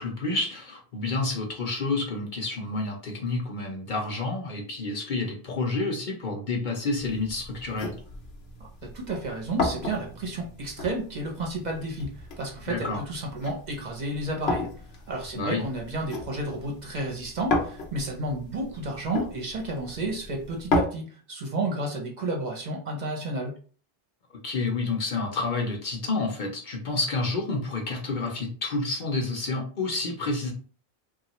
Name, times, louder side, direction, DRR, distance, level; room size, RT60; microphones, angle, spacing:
voice 1, 0.0-7.9 12.7-13.0 15.3-15.6 24.4-30.5, left 3 dB, 55° left, 1 dB, 0.8 m, -29 dB
sound 1, 7.0-20.8, left 3 dB, 80° left, 1.0 m, -34 dB
voice 2, 8.6-14.7 15.1-23.5, right 2 dB, 50° right, 0 dB, 0.8 m, -32 dB
3.2 x 2.4 x 2.9 m, 0.41 s
omnidirectional pair, 1.0 m